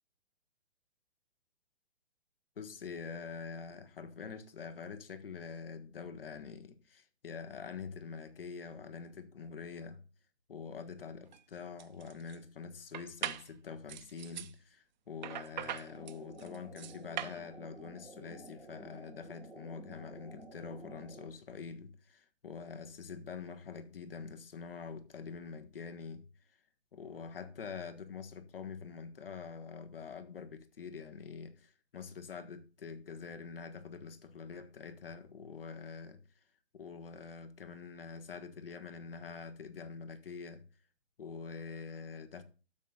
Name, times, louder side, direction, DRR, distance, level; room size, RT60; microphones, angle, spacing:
voice 1, 2.6-10.0 10.5-26.3 26.9-36.2 36.7-40.6 41.2-42.4, left 5 dB, 65° left, 1.6 m, -45 dB
sound 1, 11.2-11.4 11.8-12.4 12.9-13.5 13.9-14.5 15.2-17.4, right 11 dB, 45° right, 0.7 m, -41 dB
sound 2, 15.9-21.3, right 2 dB, ahead, 0.4 m, -52 dB
12.5 x 7.4 x 2.4 m
figure-of-eight pair, 130°, 31 cm